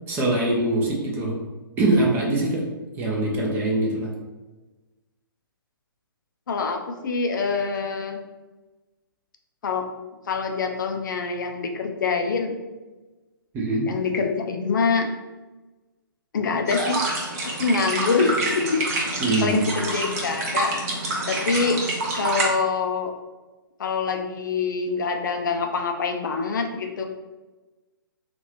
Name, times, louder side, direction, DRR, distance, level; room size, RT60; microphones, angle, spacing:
voice 1, 0.1-1.4 1.8-2.6 3.0-4.1 13.5-13.9 19.2-19.7, right 2 dB, 15° right, -2 dB, 0.6 m, -23 dB
voice 2, 6.5-8.2 9.6-9.9 10.3-12.6 13.9-15.1 16.3-17.0 17.6-18.8 19.4-20.7 21.3-21.8 22.1-23.1 23.8-27.0, left 4 dB, 55° left, 3 dB, 0.4 m, -25 dB
sound 1, 16.7-22.5, right 2 dB, 45° right, 0.9 m, -27 dB
2.9 x 2.5 x 3.1 m, 1.2 s
figure-of-eight pair, 130°, 12 cm